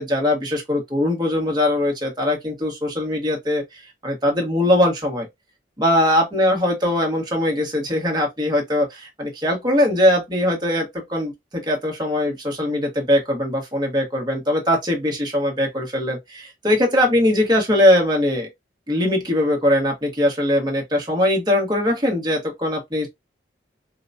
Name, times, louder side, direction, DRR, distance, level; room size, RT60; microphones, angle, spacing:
voice 1, 0.0-5.3 5.8-18.5 18.9-23.1, left 1 dB, 20° right, 1.3 m, -21 dB
4.7 x 2.2 x 2.6 m
head